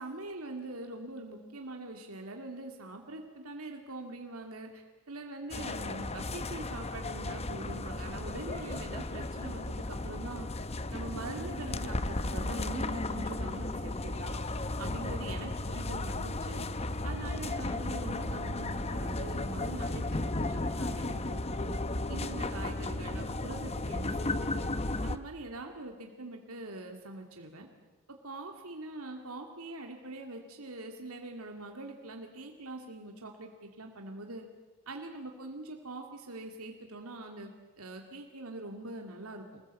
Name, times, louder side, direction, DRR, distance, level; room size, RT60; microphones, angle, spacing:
voice 1, 0.0-10.5 10.9-14.4 14.8-16.7 17.0-21.8 22.1-24.7 25.0-27.7 28.1-34.4 34.9-37.5 37.8-39.6, right 2 dB, 85° right, 3 dB, 2.4 m, -43 dB
sound 1, 5.5-25.2, left 2 dB, 30° left, 0.9 m, -35 dB
25.5 x 20.0 x 8.3 m, 1.2 s
head